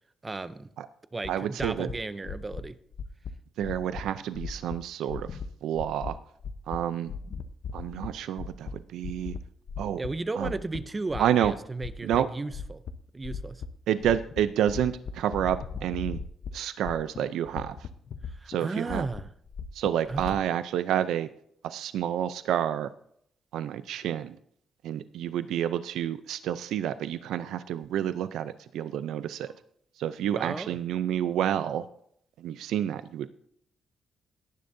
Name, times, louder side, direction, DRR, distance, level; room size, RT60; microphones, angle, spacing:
voice 1, 0.2-0.7 1.1-2.8 10.0-12.8 13.1-13.6 18.4-19.3 20.1-20.2 30.3-30.8, right 3 dB, 20° right, 14 dB, 0.5 m, -34 dB
sound 1, 1.2-1.3 1.6-1.9 2.2-2.6 2.9-3.3 3.6-4.0 4.3-4.7 5.1-5.5 5.7-6.1 6.4-6.8 7.1-8.1 8.4-8.7 9.0-9.4 9.7-10.1 10.4-11.5 11.8-12.2 12.5-12.9 13.2-13.7 14.0-14.4 14.7-16.5 16.8-17.2 17.4-18.6 18.9-20.4, left 6 dB, 50° left, 0.8 m, -37 dB
voice 2, 1.3-1.9 3.6-6.2 6.7-7.1 7.7-9.4 9.8-10.0 10.4-10.6 11.2-11.5 12.0-12.3 13.9-16.2 16.5-17.9 18.5-19.1 19.7-21.3 21.6-22.9 23.5-24.4 24.8-29.5 30.0-31.9 32.4-33.3, right 10 dB, 90° right, 12 dB, 0.5 m, -29 dB
18.0 x 10.5 x 2.7 m, 0.69 s
cardioid pair, 150°, 0 cm